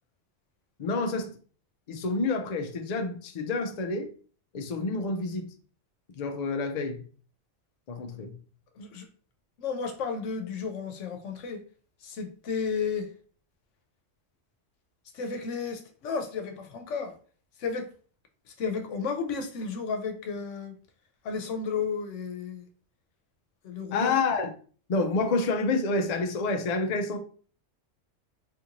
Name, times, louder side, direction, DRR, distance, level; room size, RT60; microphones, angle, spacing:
voice 1, 0.8-1.3 1.9-4.1 4.5-5.5 6.2-7.0 7.9-8.4 23.9-24.5 24.9-27.2, left 3 dB, 60° left, 0.4 m, -28 dB
voice 2, 8.8-9.1 9.6-11.6 12.0-13.1 15.1-17.1 17.6-17.9 18.5-20.8 21.2-22.6 23.6-24.1, left 5 dB, 80° left, 1.0 m, -33 dB
3.3 x 2.5 x 2.9 m
omnidirectional pair, 1.3 m